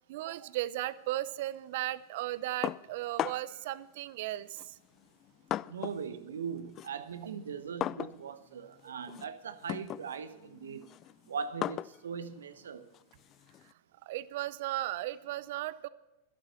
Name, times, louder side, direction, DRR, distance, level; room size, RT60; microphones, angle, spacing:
voice 1, 0.0-4.8 14.0-15.9, right 15 dB, 60° right, 0.7 m, -36 dB
sound 1, 2.6-3.6 4.5-6.1 6.4-13.7, left 12 dB, 35° left, 0.3 m, -39 dB
voice 2, 5.7-10.8 11.3-12.8, right 6 dB, 80° right, 1.1 m, -40 dB
12.0 x 11.5 x 5.8 m
hypercardioid pair, 100°, 0 cm